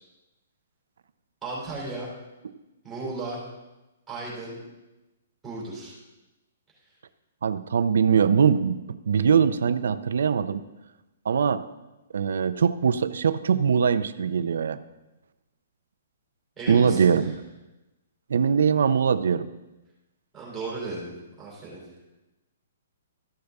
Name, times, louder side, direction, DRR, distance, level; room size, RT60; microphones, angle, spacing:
voice 1, 1.4-2.1 2.8-3.5 4.1-4.6 5.4-5.9 16.6-17.3 20.3-21.8, right 3 dB, 5° right, -7 dB, 3.0 m, -35 dB
voice 2, 7.4-10.6 11.3-11.6 12.1-14.8 16.7-17.3 18.3-19.5, right 6 dB, 75° right, 12 dB, 0.5 m, -22 dB
13.5 x 6.6 x 3.5 m, 1.0 s
hypercardioid pair, 175°, 0 cm